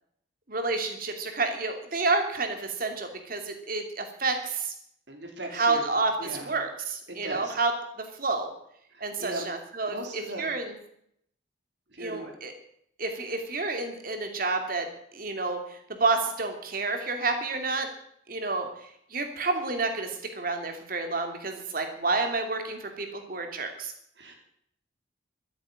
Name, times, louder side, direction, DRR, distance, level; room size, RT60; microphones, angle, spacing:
voice 1, 0.5-4.7 5.5-7.7 8.2-8.5 9.0-10.7 12.0-12.5 13.0-14.9 15.1-15.6 16.0-17.9 18.3-18.7 19.1-20.1 20.4-23.9, right 3 dB, 50° right, 5 dB, 2.8 m, -29 dB
voice 2, 5.1-5.8 6.2-6.5 7.1-7.5 8.9-9.5 9.9-10.5 11.9-12.3 24.2-24.4, right 1 dB, 70° right, 2 dB, 4.1 m, -38 dB
13.5 x 10.0 x 8.8 m, 0.69 s
head